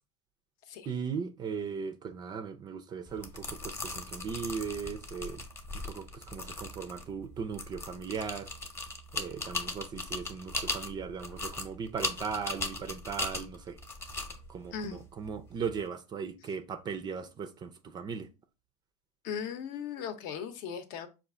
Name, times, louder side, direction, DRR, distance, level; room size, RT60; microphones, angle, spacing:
voice 1, 0.9-5.4 5.7-8.5 9.1-13.8 14.5-18.3, right 6 dB, 25° right, 0.4 m, -38 dB
sound 1, 3.1-15.8, left 2 dB, 15° left, 0.8 m, -39 dB
voice 2, 14.7-15.0 19.2-21.1, left 7 dB, 55° left, 0.8 m, -38 dB
5.4 x 2.4 x 3.6 m
supercardioid pair, 130°, 18 cm